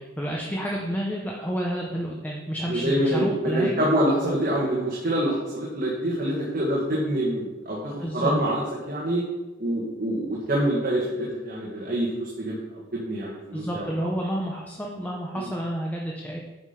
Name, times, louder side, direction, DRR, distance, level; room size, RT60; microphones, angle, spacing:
voice 1, 0.2-3.8 8.0-8.4 13.5-16.4, equal, 10° left, -1 dB, 0.9 m, -30 dB
voice 2, 2.7-9.3 9.6-14.1 15.3-15.5, right 1 dB, 50° right, -4 dB, 1.7 m, -26 dB
9.6 x 5.2 x 5.8 m, 1.1 s
head